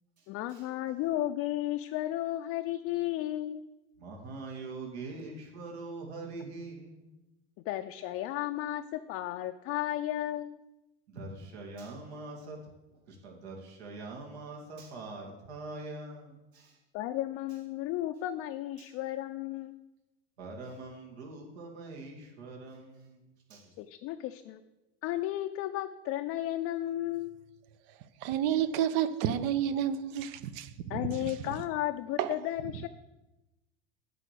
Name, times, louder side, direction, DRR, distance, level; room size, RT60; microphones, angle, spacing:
voice 1, 0.3-3.7 7.7-10.6 16.9-19.8 23.8-24.6 25.0-27.4 30.9-32.9, left 14 dB, 45° left, 0.5 m, -34 dB
voice 2, 4.0-7.1 11.1-12.6 13.1-16.8 18.8-18.9 20.4-23.7, right 3 dB, 75° right, 2.5 m, -43 dB
voice 3, 28.2-31.0 32.2-32.3, right 10 dB, 55° right, 0.8 m, -30 dB
8.5 x 5.0 x 6.8 m
hypercardioid pair, 95°, 32 cm